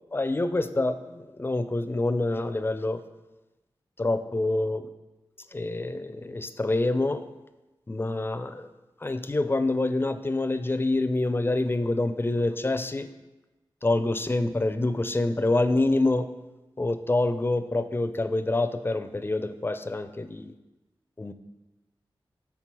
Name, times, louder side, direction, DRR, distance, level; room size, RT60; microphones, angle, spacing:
voice 1, 0.1-3.0 4.0-4.9 5.5-7.2 7.9-8.7 9.0-13.1 13.8-16.3 16.8-20.5 21.2-21.3, left 2 dB, 25° left, 10 dB, 0.4 m, -26 dB
5.9 x 3.6 x 4.6 m, 1.1 s
cardioid pair, 45°, 9 cm